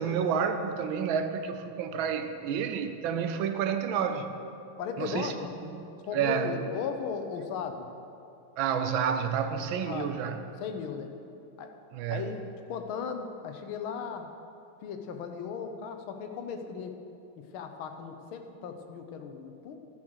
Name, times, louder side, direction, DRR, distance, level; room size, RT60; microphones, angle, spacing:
voice 1, 0.0-4.3 5.0-5.3 6.1-6.5 8.6-10.4 11.9-12.2, right 7 dB, 70° right, 8 dB, 1.3 m, -29 dB
voice 2, 4.8-5.5 6.0-7.9 9.8-10.1 10.6-11.1 11.6-11.7 12.1-12.4 12.7-14.3 14.8-17.0 17.4-19.8, left 6 dB, 75° left, 6 dB, 1.6 m, -36 dB
12.5 x 6.3 x 6.3 m, 2.7 s
omnidirectional pair, 2.4 m